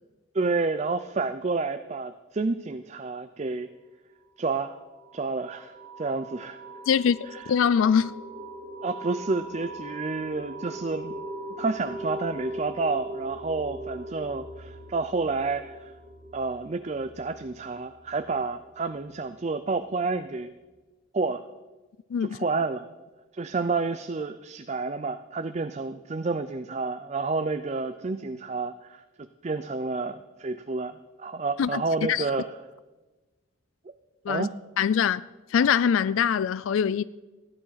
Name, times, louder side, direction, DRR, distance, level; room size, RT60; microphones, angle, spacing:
voice 1, 0.3-3.7 4.4-4.8 5.1-6.6 7.3-7.5 8.8-11.1 11.6-15.9 16.3-20.5 21.1-21.4 22.2-22.9 23.3-32.5 34.3-34.5, right 3 dB, 35° right, 0.4 m, -30 dB
sound 1, 4.6-19.0, right 1 dB, ahead, 6.4 m, -40 dB
voice 2, 6.9-7.2 7.5-8.1 22.1-22.4 31.6-31.8 32.1-32.3 34.3-34.5 34.8-35.2 35.5-37.0, left 7 dB, 80° left, 0.3 m, -23 dB
15.0 x 11.0 x 5.8 m
head